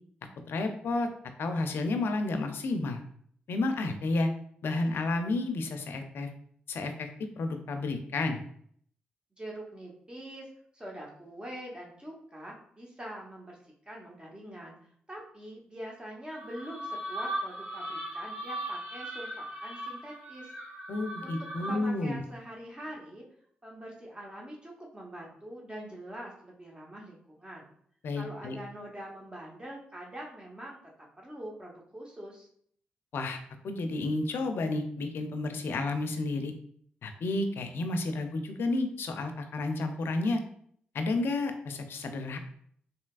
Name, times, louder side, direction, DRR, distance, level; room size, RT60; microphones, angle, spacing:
voice 1, 0.5-1.1 1.4-3.0 3.5-4.3 4.6-6.3 6.7-7.1 7.4-8.4 20.9-22.2 28.0-28.6 33.1-36.5 37.0-40.4 40.9-42.4, left 2 dB, 70° left, 6 dB, 0.4 m, -31 dB
voice 2, 9.4-10.5 10.7-13.6 13.9-14.8 15.1-20.5 21.2-21.3 21.7-23.2 23.6-27.7 28.1-30.8 31.2-32.5, right 1 dB, 20° right, -2 dB, 0.8 m, -44 dB
sound 1, 16.3-22.0, right 1 dB, 50° right, 1.1 m, -38 dB
3.2 x 2.7 x 2.3 m, 0.63 s
supercardioid pair, 40°, 4 cm